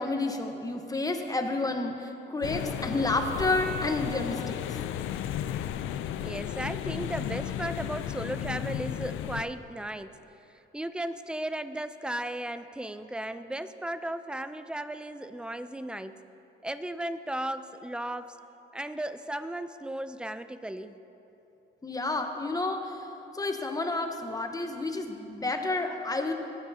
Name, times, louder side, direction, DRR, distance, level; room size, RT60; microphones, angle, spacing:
voice 1, 0.0-4.6 21.8-23.1 23.3-26.3, left 2 dB, 20° left, 4 dB, 1.0 m, -30 dB
sound 1, 2.4-9.4, left 10 dB, 80° left, 0.5 m, -34 dB
voice 2, 6.2-10.1 10.7-16.2 16.6-18.4 18.7-21.0, right 1 dB, 5° right, 11 dB, 0.4 m, -35 dB
18.0 x 9.8 x 2.8 m, 3.0 s
cardioid pair, 90°, 20 cm